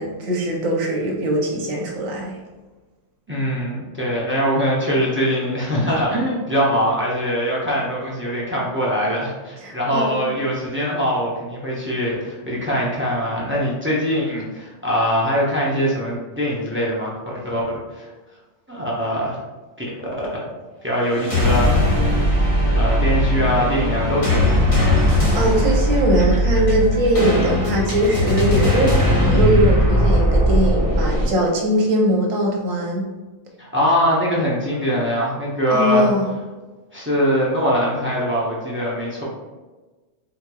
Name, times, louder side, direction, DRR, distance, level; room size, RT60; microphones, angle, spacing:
voice 1, 0.0-2.4 9.6-10.2 25.1-33.1 35.7-36.3, right 1 dB, 85° right, -1 dB, 1.2 m, -21 dB
voice 2, 3.3-17.1 17.4-17.6 17.9-18.1 18.7-19.4 20.2-20.4 20.8-21.7 22.7-24.7 33.6-36.1 36.9-39.2, equal, 20° right, -5 dB, 0.4 m, -22 dB
sound 1, 21.1-31.3, left 1 dB, 30° left, 1.0 m, -18 dB
4.1 x 3.0 x 2.2 m, 1.2 s
omnidirectional pair, 1.4 m